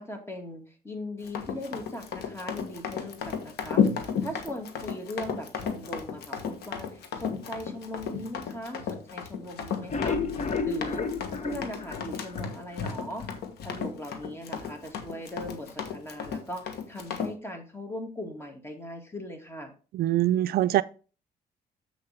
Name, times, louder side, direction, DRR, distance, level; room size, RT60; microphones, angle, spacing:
voice 1, 0.0-10.2 10.6-11.1 11.4-13.3 13.6-19.7, left 1 dB, 15° left, 2.1 m, -39 dB
Run, 1.2-17.3, left 6 dB, 80° left, 1.4 m, -33 dB
sound 1, 9.7-12.9 13.3-13.4 13.8-13.9 14.2-14.3, left 5 dB, 45° left, 1.3 m, -32 dB
voice 2, 19.9-20.8, right 14 dB, 70° right, 0.4 m, -23 dB
7.4 x 6.7 x 3.5 m
cardioid pair, 95°, 16 cm